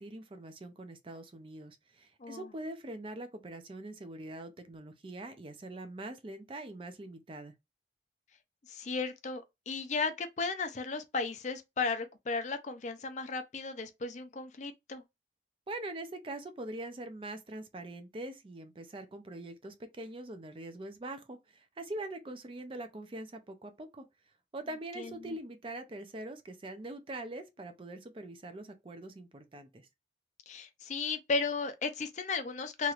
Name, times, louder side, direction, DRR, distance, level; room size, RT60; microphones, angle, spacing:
voice 1, 0.0-7.5 15.7-24.0 24.5-29.9, right 1 dB, 30° right, 0.4 m, -43 dB
voice 2, 8.7-15.0 25.0-25.3 30.5-32.9, left 4 dB, 40° left, 0.5 m, -35 dB
3.0 x 3.0 x 2.4 m
head